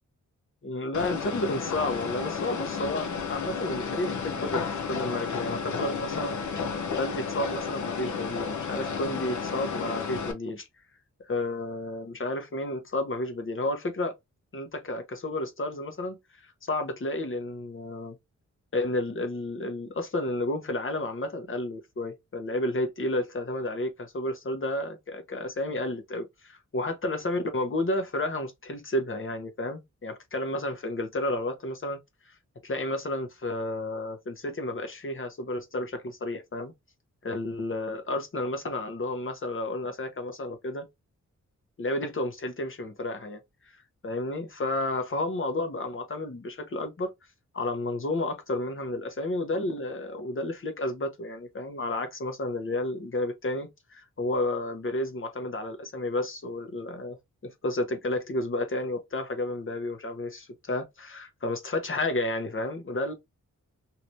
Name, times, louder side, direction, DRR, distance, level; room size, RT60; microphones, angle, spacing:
voice 1, 0.6-6.4 6.9-10.7 11.3-14.1 14.5-16.2 16.6-18.2 18.7-32.0 32.3-32.4 32.6-36.7 37.2-40.9 41.8-43.4 44.0-47.1 47.5-63.1, left 2 dB, 40° left, 1.0 m, -31 dB
sound 1, 0.9-10.3, left 5 dB, 70° left, 0.8 m, -32 dB
3.1 x 2.9 x 2.6 m
wide cardioid pair, 100°, 31 cm